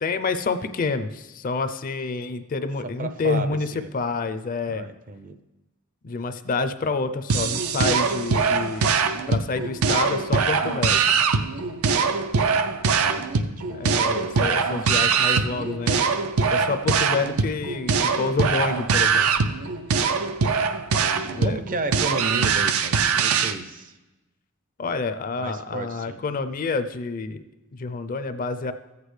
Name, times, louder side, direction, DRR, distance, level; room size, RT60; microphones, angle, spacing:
voice 1, 0.0-4.9 6.0-8.9 9.3-11.0 13.7-16.1 16.5-19.3 21.2-21.6 24.8-27.4 27.7-28.7, left 4 dB, 40° left, 10 dB, 0.4 m, -28 dB
voice 2, 3.0-3.9 4.7-5.4 12.9-13.8 14.1-14.3 21.0-23.9 25.4-26.2, right 2 dB, 40° right, 10 dB, 0.5 m, -33 dB
sound 1, 7.3-23.5, right 5 dB, 85° right, 0.5 m, -22 dB
14.0 x 8.2 x 3.2 m, 1.1 s
head